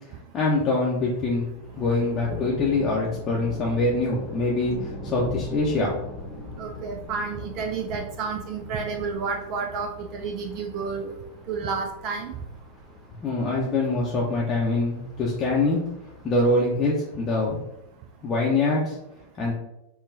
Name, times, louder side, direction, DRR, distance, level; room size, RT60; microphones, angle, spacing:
voice 1, 0.3-1.5 1.8-6.0 13.2-15.8 16.2-17.6 18.2-19.0 19.4-19.5, left 2 dB, 25° left, -4 dB, 0.7 m, -24 dB
Thunder, 1.6-17.5, left 2 dB, 5° right, 1.1 m, -41 dB
voice 2, 6.6-11.1 11.5-12.3, right 5 dB, 40° right, 3 dB, 0.4 m, -30 dB
5.3 x 2.3 x 2.5 m, 0.85 s
figure-of-eight pair, 90°, 0 cm